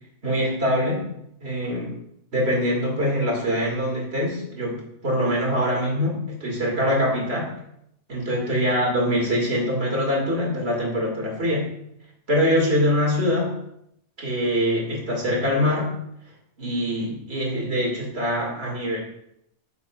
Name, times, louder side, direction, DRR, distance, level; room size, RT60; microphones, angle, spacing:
voice 1, 0.2-1.1 1.4-2.0 2.3-7.5 8.1-11.7 12.3-13.6 14.2-15.9 16.6-19.0, equal, 55° right, -2 dB, 2.4 m, -24 dB
9.0 x 6.9 x 2.4 m, 0.76 s
omnidirectional pair, 1.3 m